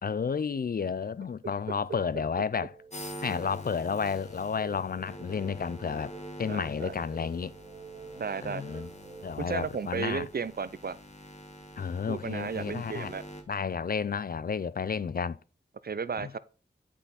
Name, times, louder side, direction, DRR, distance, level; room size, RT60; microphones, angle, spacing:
voice 1, 0.0-2.7 3.2-6.1 6.4-7.5 8.4-8.9 9.2-10.2 11.8-13.1 13.5-15.4 16.2-16.4, left 6 dB, 55° left, 0.4 m, -31 dB
sound 1, 1.5-9.6, right 4 dB, 35° right, 1.7 m, -51 dB
sound 2, 2.9-13.4, equal, 40° left, 1.8 m, -46 dB
voice 2, 6.5-6.9 8.2-8.6 9.4-11.0 12.1-13.2 15.8-16.4, right 5 dB, 55° right, 0.5 m, -34 dB
8.4 x 5.7 x 4.1 m
wide cardioid pair, 50°, 19 cm